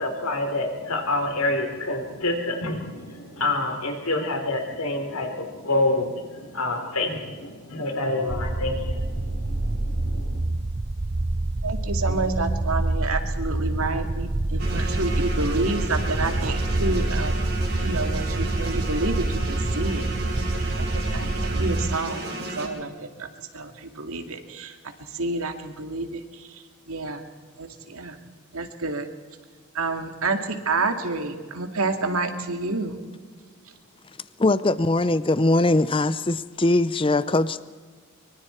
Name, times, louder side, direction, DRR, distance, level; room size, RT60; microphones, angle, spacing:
voice 1, 0.0-10.4, left 2 dB, 80° left, 4 dB, 3.8 m, -27 dB
sound 1, 8.3-22.0, right 2 dB, 30° right, 0.6 m, -26 dB
voice 2, 11.6-17.4 17.8-20.1 20.8-22.3 22.6-23.3 23.5-24.8 25.1-27.3 27.6-28.2 28.5-29.1 29.7-33.0, right 3 dB, 75° right, 6 dB, 2.2 m, -29 dB
sound 2, 14.6-22.7, right 2 dB, 45° right, 4.2 m, -33 dB
voice 3, 34.4-37.6, left 2 dB, 25° left, 15 dB, 0.5 m, -21 dB
24.0 x 24.0 x 4.5 m, 1.5 s
head